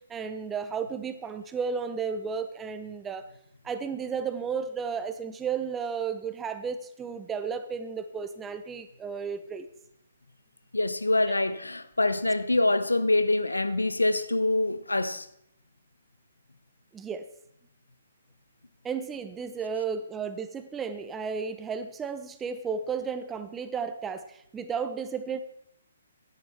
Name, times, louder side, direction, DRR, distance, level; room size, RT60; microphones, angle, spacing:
voice 1, 0.1-3.2 3.6-9.7 11.3-11.4 16.9-17.3 18.8-25.4, right 6 dB, 15° right, 0.9 m, -33 dB
voice 2, 10.7-15.3, left 2 dB, 90° left, 1.0 m, -25 dB
15.5 x 9.8 x 4.4 m
figure-of-eight pair, 135°, 0 cm